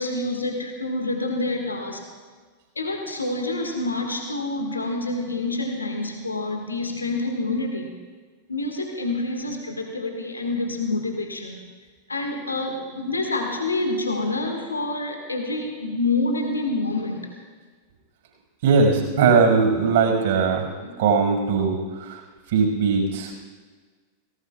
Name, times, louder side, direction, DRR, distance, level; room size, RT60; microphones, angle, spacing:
voice 1, 0.0-2.1 2.8-7.9 8.5-11.6 12.1-17.3 20.8-21.0, left 2 dB, 80° left, 3 dB, 1.9 m, -27 dB
voice 2, 18.6-20.7 21.0-22.2 22.5-23.3, right 5 dB, 55° right, 1 dB, 6.0 m, -20 dB
29.0 x 18.5 x 2.4 m, 1.5 s
figure-of-eight pair, 90°, 0 cm